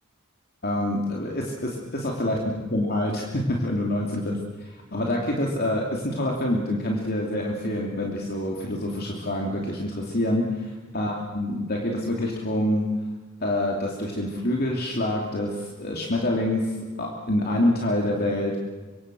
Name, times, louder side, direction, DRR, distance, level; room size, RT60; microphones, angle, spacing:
voice 1, 0.6-2.4 2.7-12.9 13.4-18.5, left 1 dB, 45° left, -1 dB, 3.0 m, -26 dB
25.0 x 24.5 x 6.3 m, 1.4 s
head